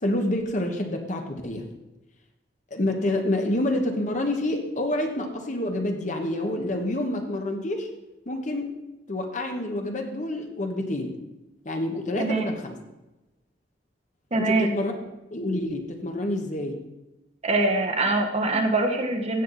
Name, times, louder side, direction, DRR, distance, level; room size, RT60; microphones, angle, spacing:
voice 1, 0.0-1.6 2.7-7.9 8.3-8.8 9.1-11.2 11.6-12.8 14.4-14.9 15.3-16.8, left 1 dB, 45° left, 4 dB, 1.3 m, -28 dB
voice 2, 12.2-12.5 14.3-14.7 17.4-19.4, right 2 dB, 40° right, 4 dB, 1.2 m, -23 dB
15.5 x 7.6 x 4.1 m, 1.0 s
head